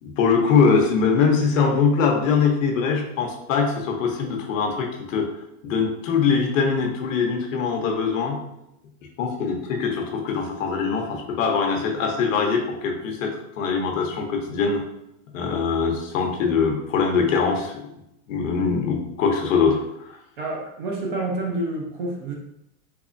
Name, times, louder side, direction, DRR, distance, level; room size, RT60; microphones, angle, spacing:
voice 1, 0.0-5.3 5.6-8.4 9.2-14.9 15.3-17.9 18.3-20.1, left 5 dB, 60° left, 2 dB, 0.8 m, -22 dB
voice 2, 20.4-22.3, right 2 dB, 35° right, 0 dB, 0.4 m, -28 dB
3.5 x 3.3 x 2.5 m, 0.82 s
supercardioid pair, 175°, 44 cm